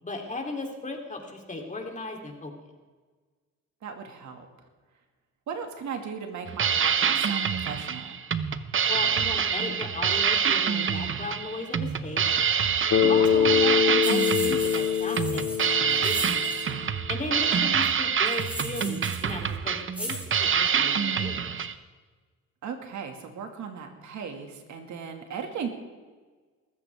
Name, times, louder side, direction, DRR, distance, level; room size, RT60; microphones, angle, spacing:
voice 1, 0.0-2.5 8.9-12.2 13.0-16.4 17.1-21.7, left 2 dB, 25° left, 1 dB, 3.3 m, -36 dB
voice 2, 3.8-4.5 5.5-8.2 13.1-13.5 17.5-17.7 22.6-25.7, right 6 dB, 70° right, 4 dB, 2.1 m, -37 dB
sound 1, 6.5-21.7, right 7 dB, 40° right, 0.9 m, -26 dB
Bass guitar, 12.9-16.9, left 8 dB, 65° left, 2.6 m, -24 dB
sound 2, 14.0-16.6 18.3-19.3 19.9-20.3, equal, 5° right, 6.0 m, -37 dB
22.5 x 14.5 x 3.6 m, 1.4 s
cardioid pair, 90°, 30 cm